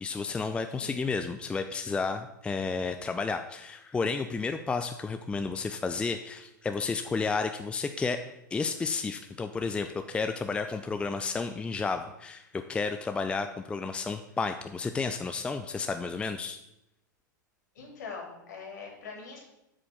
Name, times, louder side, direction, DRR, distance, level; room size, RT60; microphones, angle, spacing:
voice 1, 0.0-16.6, left 4 dB, 10° left, 8 dB, 0.4 m, -32 dB
voice 2, 17.7-19.4, left 5 dB, 60° left, -1 dB, 3.3 m, -42 dB
8.1 x 5.0 x 6.3 m, 0.86 s
figure-of-eight pair, 95°, 11 cm